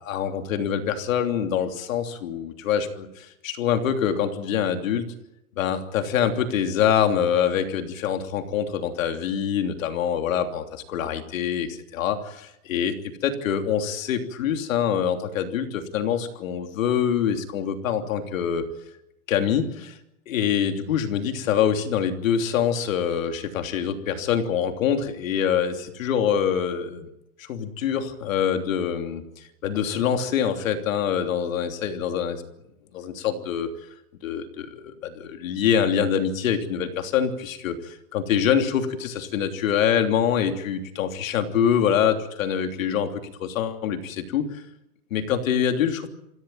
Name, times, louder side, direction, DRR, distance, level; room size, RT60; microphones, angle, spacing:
voice 1, 0.0-5.1 5.6-18.6 19.3-20.0 20.3-27.1 27.4-32.4 32.9-33.7 34.2-44.6 45.1-46.1, left 8 dB, 60° left, 6 dB, 3.2 m, -25 dB
27.5 x 16.0 x 9.3 m, 0.86 s
supercardioid pair, 180°, 45 cm